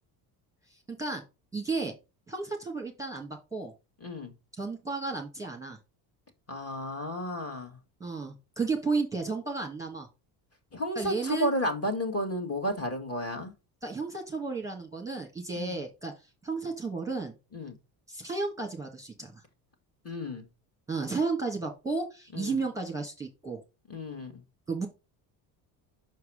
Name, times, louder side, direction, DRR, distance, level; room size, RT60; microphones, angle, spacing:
voice 1, 0.7-1.2 1.5-1.9 2.3-3.7 4.6-5.8 8.0-10.1 10.9-11.5 13.8-16.1 16.4-17.3 18.1-19.4 20.9-23.6 24.7-24.9, right 4 dB, 5° right, 1.6 m, -33 dB
voice 2, 4.0-4.3 6.5-7.8 10.7-13.5 15.6-15.8 17.5-17.8 20.0-20.4 22.3-22.6 23.9-24.4, equal, 30° left, 2.1 m, -32 dB
6.1 x 4.7 x 4.9 m
supercardioid pair, 90°, 50 cm